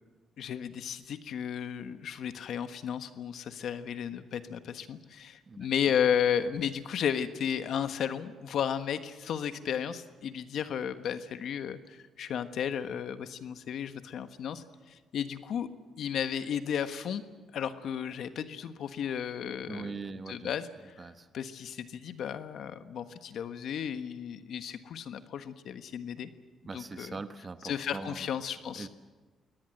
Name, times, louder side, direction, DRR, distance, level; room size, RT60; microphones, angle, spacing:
voice 1, 0.4-15.7 16.0-17.2 17.5-26.3 26.7-27.2 27.6-28.9, left 8 dB, 70° left, 10 dB, 1.3 m, -34 dB
voice 2, 19.7-20.5 21.0-21.3 26.7-28.3 28.8-28.9, right 4 dB, 30° right, 10 dB, 1.0 m, -41 dB
23.5 x 18.0 x 7.9 m, 1.3 s
cardioid pair, 90°, 0 cm